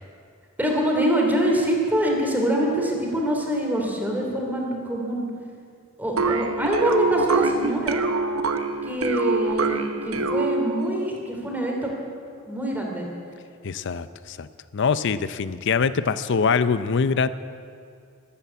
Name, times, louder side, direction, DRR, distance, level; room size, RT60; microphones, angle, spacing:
voice 1, 0.6-5.3 6.0-8.0 8.8-11.9 12.4-13.1, right 1 dB, 10° right, -1 dB, 2.9 m, -24 dB
sound 1, 6.2-11.0, right 3 dB, 75° right, 1.0 m, -25 dB
voice 2, 13.6-14.5 14.7-17.3, left 5 dB, 60° left, 14 dB, 0.6 m, -23 dB
13.0 x 13.0 x 8.2 m, 2.3 s
head